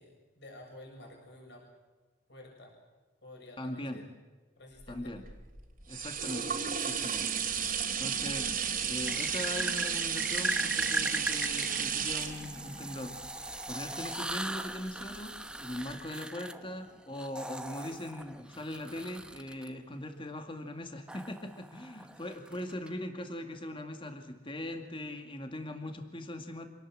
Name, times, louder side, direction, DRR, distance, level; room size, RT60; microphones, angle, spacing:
voice 1, 0.0-1.7 2.3-2.8 3.2-4.0 4.5-5.1, left 1 dB, 60° left, 1 dB, 7.2 m, -51 dB
voice 2, 3.6-4.0 4.9-5.2 5.9-7.3 8.0-26.7, left 1 dB, 30° left, 5 dB, 2.2 m, -40 dB
sound 1, 4.9-14.6 15.1-15.2, right 7 dB, 45° right, 3.1 m, -33 dB
sound 2, 6.8-7.7 9.0-19.7 21.1-22.9, right 1 dB, 5° right, 1.0 m, -39 dB
27.0 x 18.5 x 7.7 m, 1.3 s
head